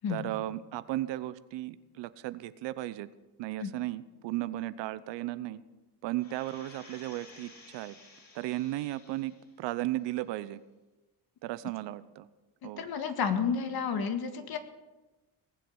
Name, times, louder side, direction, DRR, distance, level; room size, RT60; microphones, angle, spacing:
voice 1, 0.1-3.1 3.4-5.6 6.0-7.9 8.3-10.6 11.4-12.3 12.6-12.9, right 16 dB, 75° right, 15 dB, 0.8 m, -35 dB
sound 1, 6.2-9.6 10.0-10.1, left 3 dB, 40° left, 5.0 m, -54 dB
voice 2, 12.6-14.6, left 6 dB, 55° left, 7 dB, 1.9 m, -31 dB
19.5 x 7.7 x 7.1 m, 1.1 s
cardioid pair, 90°, 43 cm